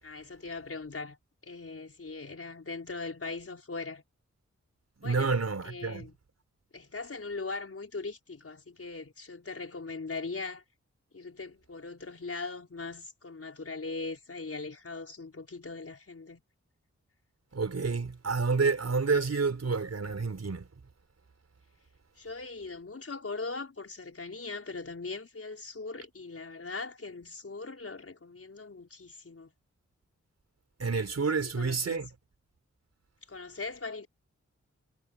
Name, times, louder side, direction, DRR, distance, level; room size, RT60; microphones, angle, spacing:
voice 1, 0.0-1.2 1.4-4.0 5.0-5.4 5.6-6.2 6.7-10.6 11.1-16.4 22.2-29.5 31.3-32.0 33.3-34.1, left 3 dB, 50° left, 5.3 m, -40 dB
voice 2, 5.0-6.0 17.5-20.7 30.8-32.1, right 4 dB, 60° right, 4.9 m, -29 dB
cardioid pair, 55°, 30 cm